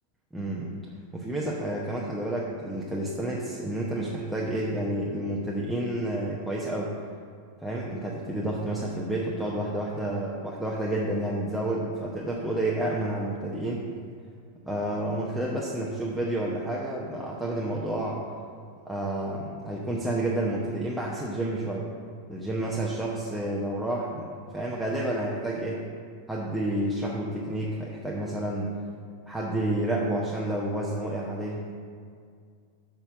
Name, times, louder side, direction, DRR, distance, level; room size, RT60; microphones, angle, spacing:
voice 1, 0.3-0.7 1.1-7.0 7.6-13.9 14.7-18.2 18.8-21.9 22.3-25.9 26.3-28.8 29.3-31.7, right 1 dB, ahead, -5 dB, 0.9 m, -30 dB
6.4 x 5.6 x 6.8 m, 2.2 s
figure-of-eight pair, 90°, 0 cm